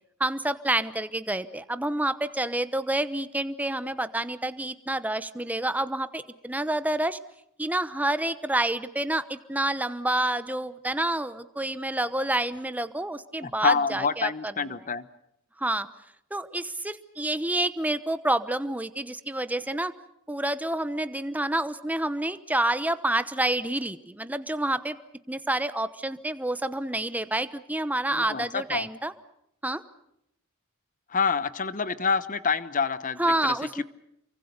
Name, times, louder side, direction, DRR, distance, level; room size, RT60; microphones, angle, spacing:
voice 1, 0.2-7.2 7.6-14.5 15.6-15.9 16.3-19.9 20.3-25.0 25.3-29.1 29.6-29.8 33.2-33.8, right 1 dB, 5° right, 13 dB, 0.9 m, -28 dB
voice 2, 13.4-15.0 28.1-28.9 31.1-33.8, left 5 dB, 40° left, 15 dB, 1.1 m, -27 dB
28.0 x 24.0 x 6.7 m, 0.78 s
head